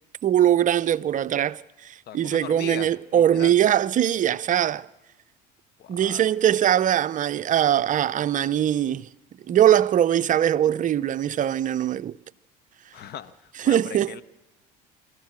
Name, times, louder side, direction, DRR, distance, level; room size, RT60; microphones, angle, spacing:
voice 1, 0.2-4.9 5.9-9.1 9.5-12.2 13.6-14.2, right 11 dB, 40° right, 0.6 m, -21 dB
voice 2, 2.1-3.6 5.8-6.2 12.9-14.2, left 9 dB, 55° left, 1.1 m, -39 dB
24.0 x 14.5 x 7.5 m
supercardioid pair, 80°, 20 cm